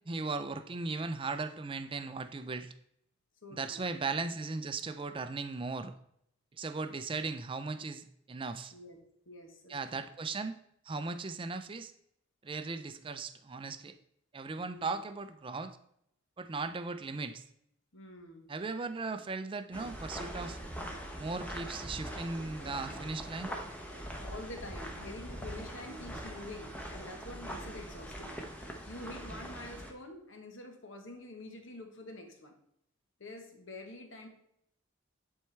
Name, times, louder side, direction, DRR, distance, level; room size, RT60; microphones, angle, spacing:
voice 1, 0.1-2.7 3.5-5.9 6.6-8.7 9.7-10.6 10.9-11.9 12.4-14.0 14.3-15.8 16.4-17.4 18.5-20.6 21.2-23.5, right 3 dB, 25° right, 10 dB, 0.4 m, -37 dB
voice 2, 3.4-3.8 8.7-9.0 9.2-10.0 14.6-15.0 17.9-18.5 24.2-28.4 28.9-32.5 33.2-34.3, left 2 dB, 65° left, 4 dB, 1.2 m, -47 dB
sound 1, 19.7-29.9, equal, 5° left, 0.8 m, -42 dB
10.5 x 4.4 x 3.3 m, 0.73 s
head